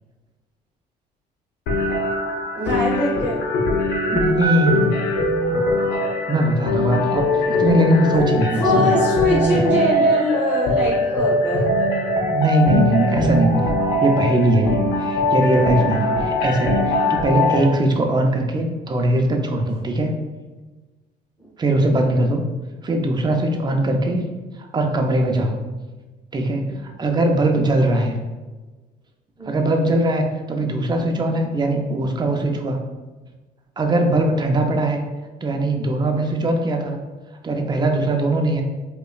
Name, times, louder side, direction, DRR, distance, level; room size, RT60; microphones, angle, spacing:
sound 1, 1.7-17.7, left 1 dB, 90° left, 0.6 m, -21 dB
voice 1, 2.5-3.4 8.6-11.7 17.0-17.1 29.4-29.5, left 1 dB, 15° left, -8 dB, 1.1 m, -22 dB
voice 2, 4.1-5.0 6.3-9.0 12.3-13.7 14.0-20.1 21.6-22.4 22.8-24.2 24.7-25.6 26.3-28.2 29.5-32.8 33.8-35.0 35.4-37.0 37.4-38.6, right 1 dB, 25° right, 3 dB, 0.5 m, -20 dB
5.0 x 2.3 x 2.3 m, 1.2 s
cardioid pair, 110°, 17 cm